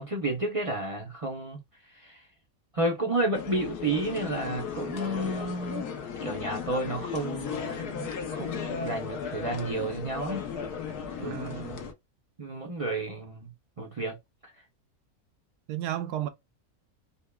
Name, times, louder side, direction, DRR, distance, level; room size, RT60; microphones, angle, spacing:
voice 1, 0.0-1.6 1.9-2.2 2.7-5.9 6.2-10.5 11.2-11.4 12.4-13.5 13.8-14.2, right 2 dB, 50° right, 0.4 m, -31 dB
sound 1, 3.3-11.9, left 7 dB, 80° left, 1.3 m, -36 dB
voice 2, 11.2-11.9 15.7-16.3, right 12 dB, 90° right, 1.1 m, -33 dB
5.2 x 2.2 x 2.2 m
omnidirectional pair, 1.6 m